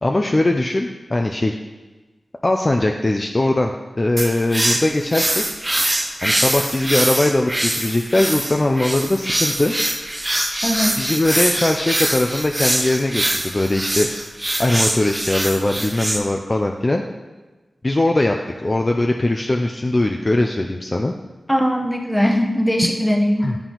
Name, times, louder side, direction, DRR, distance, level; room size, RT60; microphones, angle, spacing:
voice 1, 0.0-1.6 2.4-3.7 4.0-5.4 6.2-9.7 11.0-14.1 14.6-17.0 17.8-21.1 23.4-23.6, left 2 dB, 35° left, 2 dB, 0.5 m, -20 dB
sound 1, 4.2-16.2, right 1 dB, 25° right, 0.7 m, -23 dB
voice 2, 10.6-11.0 21.5-23.5, equal, 10° left, 2 dB, 1.0 m, -19 dB
9.1 x 4.3 x 3.8 m, 1.2 s
wide cardioid pair, 55°, 0 cm